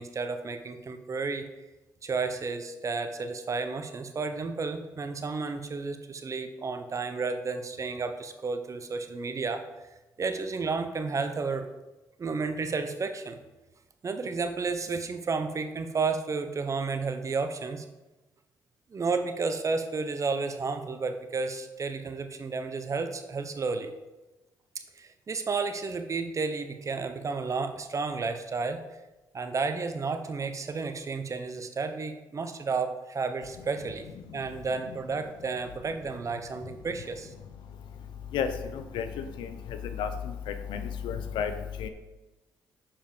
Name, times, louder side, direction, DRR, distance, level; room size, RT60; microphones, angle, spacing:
voice 1, 0.0-1.5 2.0-9.6 10.2-11.7 12.2-13.4 14.0-17.8 18.9-23.9 25.0-29.0 29.3-34.1 34.3-37.3, right 4 dB, 40° right, 8 dB, 0.9 m, -32 dB
voice 2, 38.7-39.1 39.4-39.5 40.0-40.1 40.7-41.5 41.8-41.9, left 8 dB, 80° left, 9 dB, 0.7 m, -31 dB
7.1 x 5.1 x 5.2 m, 1.1 s
supercardioid pair, 65°, 8 cm